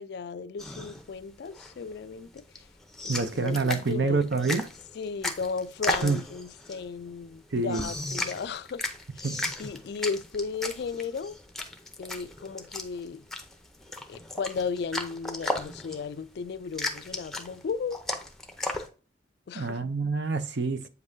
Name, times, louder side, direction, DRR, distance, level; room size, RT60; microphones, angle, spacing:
voice 1, 0.0-2.7 3.0-3.6 3.9-4.2 4.9-8.8 9.1-9.3 9.6-11.4 12.0-13.2 14.1-18.0 19.5-19.8, left 5 dB, 55° left, 0.3 m, -35 dB
sound 1, 0.6-18.9, left 1 dB, 5° left, 0.6 m, -36 dB
voice 2, 3.1-4.7 6.0-6.2 7.5-7.9 9.2-9.4 19.5-20.9, right 4 dB, 60° right, 0.6 m, -27 dB
8.0 x 5.4 x 2.6 m
head